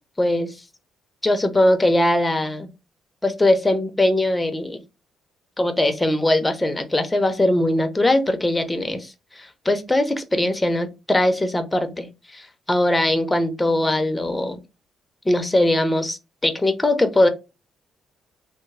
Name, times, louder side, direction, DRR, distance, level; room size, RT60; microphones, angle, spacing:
voice 1, 0.2-0.5 1.2-2.7 3.2-4.8 5.6-14.6 15.3-17.3, left 1 dB, 15° left, 0.7 m, -21 dB
3.5 x 2.0 x 3.2 m
cardioid pair, 90°, 0 cm